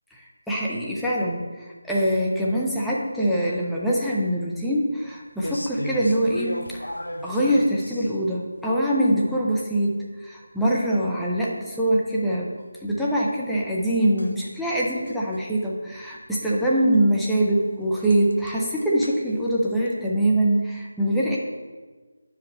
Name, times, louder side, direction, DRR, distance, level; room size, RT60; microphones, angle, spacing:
voice 1, 0.1-6.9 7.2-12.5 12.8-21.4, right 1 dB, ahead, -6 dB, 0.7 m, -24 dB
sound 1, 5.4-8.4 14.2-15.4 15.7-16.0 16.2-16.4 16.9-17.0 17.2-17.3 17.6-17.7 18.0-20.0, left 1 dB, 80° left, 0.7 m, -34 dB
10.5 x 5.0 x 3.2 m, 1.4 s
figure-of-eight pair, 160°, 0 cm